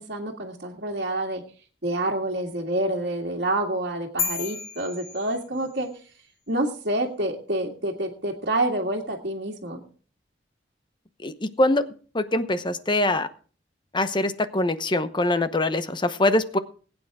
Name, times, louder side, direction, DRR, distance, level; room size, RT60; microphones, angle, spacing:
voice 1, 0.0-1.4 1.8-5.9 6.5-9.8, right 1 dB, 60° right, -5 dB, 1.9 m, -28 dB
sound 1, 4.2-5.9, left 6 dB, 55° left, 1.4 m, -32 dB
voice 2, 11.2-11.9 12.1-13.3 13.9-16.6, left 2 dB, 25° left, 11 dB, 0.9 m, -23 dB
21.0 x 9.1 x 3.6 m, 0.40 s
head